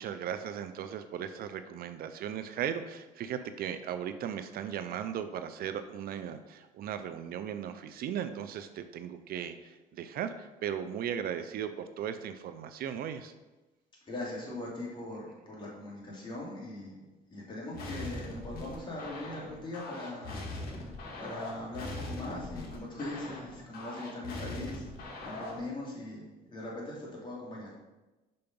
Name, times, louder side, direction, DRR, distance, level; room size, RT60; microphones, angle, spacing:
voice 1, 0.0-13.3, right 9 dB, 65° right, 10 dB, 0.5 m, -37 dB
voice 2, 14.1-17.0 17.3-20.9 21.2-24.9 25.2-27.7, left 2 dB, 30° left, -4 dB, 2.5 m, -41 dB
sound 1, 17.7-25.7, left 2 dB, 65° left, 1.8 m, -41 dB
5.6 x 5.3 x 5.3 m, 1.1 s
cardioid pair, 110°, 17 cm